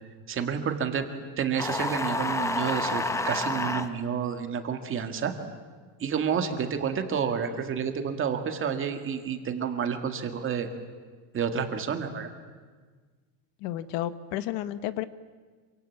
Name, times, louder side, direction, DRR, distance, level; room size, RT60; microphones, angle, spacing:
voice 1, 0.3-1.1 1.4-5.3 6.0-10.7 11.3-12.3, right 7 dB, 25° right, 6 dB, 2.1 m, -29 dB
sound 1, 1.6-3.9, left 2 dB, 5° left, 0.7 m, -29 dB
voice 2, 13.6-15.0, left 13 dB, 65° left, 13 dB, 1.2 m, -32 dB
27.0 x 25.0 x 8.6 m, 1.5 s
cardioid pair, 180°, 47 cm